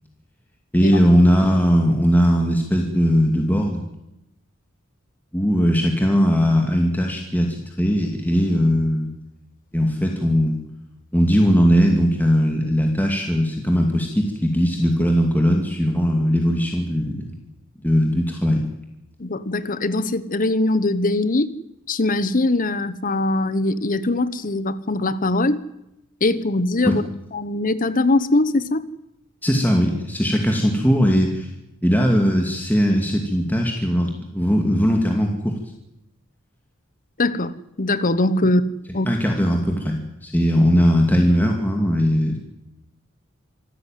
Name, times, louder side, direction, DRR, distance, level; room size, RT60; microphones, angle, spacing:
voice 1, 0.7-3.8 5.3-9.1 9.7-10.6 11.1-17.3 17.8-18.6 26.8-26.9 29.4-31.5 31.8-35.5 39.1-42.4, equal, 10° left, 2 dB, 2.4 m, -19 dB
voice 2, 19.2-21.5 21.9-25.6 26.2-27.0 27.3-28.8 37.2-39.1, left 2 dB, 40° left, 15 dB, 1.1 m, -21 dB
26.0 x 14.0 x 9.2 m, 0.86 s
head